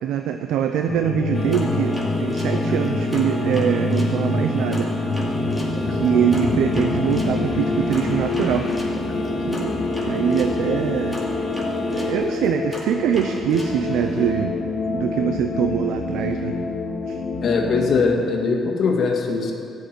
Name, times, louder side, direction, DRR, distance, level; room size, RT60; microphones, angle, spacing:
voice 1, 0.0-4.9 5.9-9.0 9.4-9.7 10.0-11.2 11.9-14.6 14.9-16.6 17.1-17.2, right 9 dB, 85° right, 6 dB, 0.6 m, -23 dB
sound 1, 0.9-18.0, left 3 dB, 75° left, 1.6 m, -26 dB
sound 2, 1.3-12.1, left 1 dB, 25° left, 1.8 m, -29 dB
sound 3, 1.5-4.2 4.7-10.6 11.1-14.3, equal, 5° right, 2.6 m, -38 dB
voice 2, 17.4-19.5, left 4 dB, 55° left, 1 dB, 1.9 m, -21 dB
13.5 x 6.7 x 9.4 m, 2.5 s
cardioid pair, 110°, 0 cm